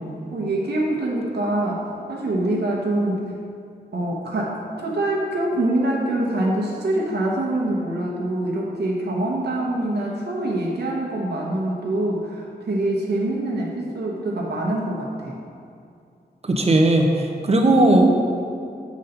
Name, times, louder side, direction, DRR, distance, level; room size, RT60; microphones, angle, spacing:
voice 1, 0.3-3.3 3.9-15.4, right 1 dB, 75° right, -4 dB, 1.0 m, -25 dB
voice 2, 16.5-18.1, right 1 dB, 35° right, 2 dB, 0.7 m, -17 dB
7.2 x 3.9 x 5.6 m, 2.5 s
wide cardioid pair, 120°, 17 cm